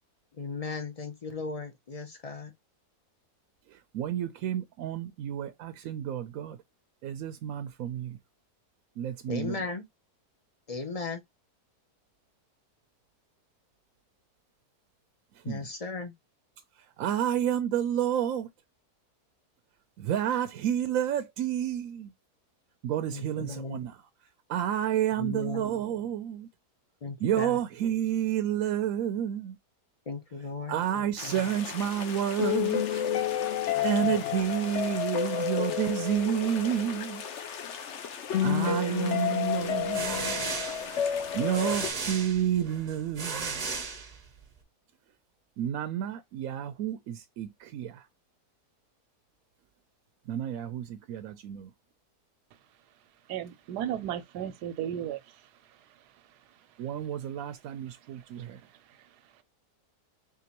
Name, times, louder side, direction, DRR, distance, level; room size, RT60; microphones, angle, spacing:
voice 1, 0.4-2.5 9.3-9.9 10.7-11.2 15.4-16.1 23.1-23.8 25.2-25.7 27.0-27.6 30.1-31.3 33.7-34.2, left 4 dB, 40° left, 0.5 m, -37 dB
voice 2, 3.7-6.6 7.0-8.2 9.0-9.7 15.3-15.7 16.8-18.5 20.0-22.1 22.8-24.0 24.5-26.5 27.2-29.6 30.7-33.0 33.8-37.2 38.4-40.4 41.3-43.7 45.6-48.1 50.3-51.7 56.8-58.6, right 10 dB, 70° right, 0.9 m, -30 dB
sound 1, 31.2-41.9, left 9 dB, 55° left, 0.9 m, -31 dB
sound 2, 39.6-44.5, right 4 dB, 40° right, 0.6 m, -36 dB
voice 3, 53.3-55.4 58.1-58.3 58.9-59.0, right 10 dB, 90° right, 1.2 m, -35 dB
3.7 x 3.7 x 2.9 m
omnidirectional pair, 1.7 m